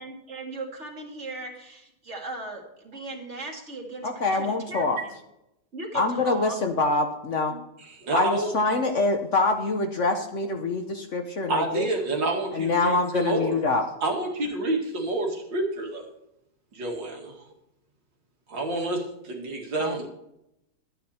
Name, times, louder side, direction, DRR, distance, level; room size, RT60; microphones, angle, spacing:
voice 1, 0.0-5.1 5.7-6.6 7.5-7.6, right 2 dB, 40° right, 1 dB, 2.5 m, -38 dB
voice 2, 4.0-5.0 5.9-7.6 8.1-11.9 12.5-13.8 19.8-20.0, left 3 dB, 50° left, 5 dB, 1.1 m, -25 dB
voice 3, 8.0-8.5 11.5-13.5 14.0-16.1 16.7-17.4 18.5-20.1, right 2 dB, 90° right, 0 dB, 2.9 m, -28 dB
12.0 x 9.6 x 4.3 m, 0.83 s
omnidirectional pair, 1.9 m